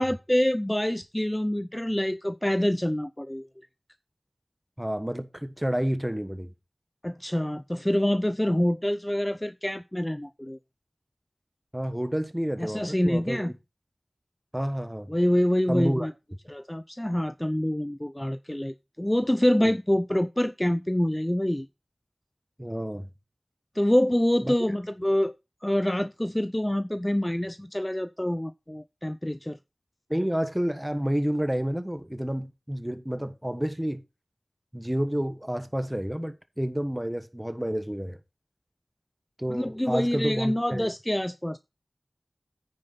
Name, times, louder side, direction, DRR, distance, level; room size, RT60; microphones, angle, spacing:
voice 1, 0.0-3.4 7.0-10.6 12.6-13.5 15.1-16.1 16.5-21.7 23.7-25.3 25.6-29.6 39.5-41.6, left 1 dB, 15° left, 0.4 m, -26 dB
voice 2, 4.8-6.5 11.7-13.5 14.5-15.1 15.7-16.1 19.6-19.7 22.6-23.1 24.4-24.5 30.1-34.0 34.7-38.2 39.4-40.9, equal, 10° right, 1.2 m, -29 dB
9.6 x 6.6 x 4.0 m
wide cardioid pair, 55°, 0 cm